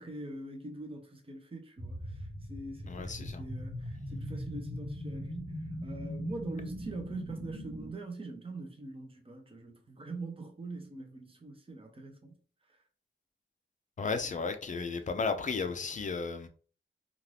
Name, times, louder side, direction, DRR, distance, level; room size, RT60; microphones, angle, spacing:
voice 1, 0.0-12.3, right 2 dB, 25° right, 0.6 m, -43 dB
sound 1, 1.8-7.9, equal, 70° right, 1.0 m, -40 dB
voice 2, 2.9-3.4 14.0-16.5, left 4 dB, 40° left, 0.4 m, -34 dB
2.6 x 2.4 x 3.3 m
wide cardioid pair, 160°, 21 cm